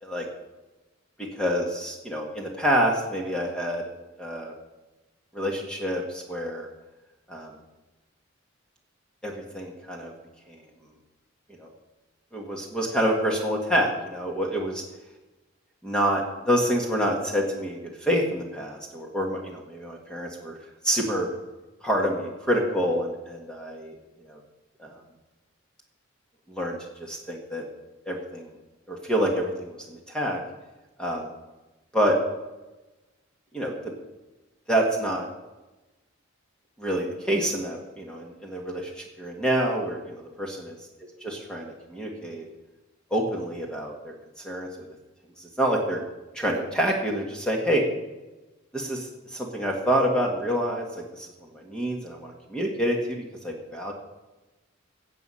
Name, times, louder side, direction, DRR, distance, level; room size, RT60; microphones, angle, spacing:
voice 1, 1.4-3.9 4.2-4.5 5.3-6.7 7.3-7.5 9.2-10.1 10.5-10.6 11.6-11.7 12.3-14.8 15.8-20.6 20.8-21.3 21.8-23.9 24.2-24.4 24.8-25.0 26.5-26.8 27.1-27.6 28.1-28.5 28.9-30.4 31.0-31.3 31.9-32.2 33.5-33.7 34.7-35.3 36.8-40.6 41.2-42.5 43.1-44.1 44.4-44.7 45.4-46.0 46.3-47.8 48.7-51.3 51.5-53.9, equal, 5° left, 0 dB, 1.7 m, -27 dB
16.5 x 7.7 x 5.6 m, 1.1 s
head